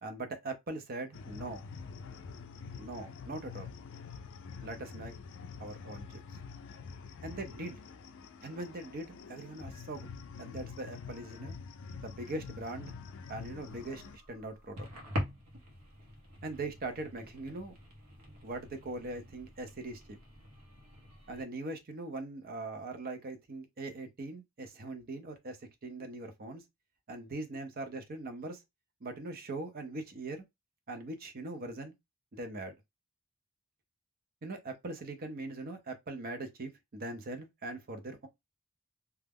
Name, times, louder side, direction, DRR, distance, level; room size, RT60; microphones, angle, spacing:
voice 1, 0.0-1.6 2.7-3.7 4.6-5.1 5.6-6.2 7.2-7.8 8.4-10.1 10.4-11.6 12.0-12.9 13.3-14.0 14.3-14.9 16.4-17.7 18.4-20.2 21.3-26.6 27.1-28.6 29.0-30.4 30.9-31.9 32.3-32.7 34.4-38.3, right 2 dB, 40° right, 0.6 m, -41 dB
sound 1, 1.1-14.2, left 5 dB, 60° left, 0.4 m, -46 dB
sound 2, 13.2-21.4, equal, 70° right, 0.9 m, -44 dB
2.3 x 2.1 x 3.4 m
head